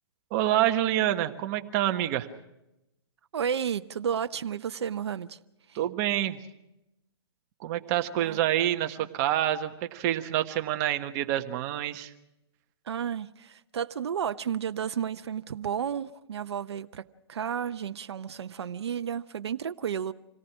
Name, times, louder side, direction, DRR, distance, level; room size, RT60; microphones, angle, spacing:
voice 1, 0.3-2.3 5.7-6.4 7.6-12.1, right 12 dB, 40° right, 1.4 m, -27 dB
voice 2, 3.3-5.4 5.7-5.8 8.2-8.4 9.0-9.1 12.8-20.1, right 8 dB, 75° right, 0.7 m, -32 dB
26.5 x 18.0 x 6.1 m
hypercardioid pair, 135°, 14 cm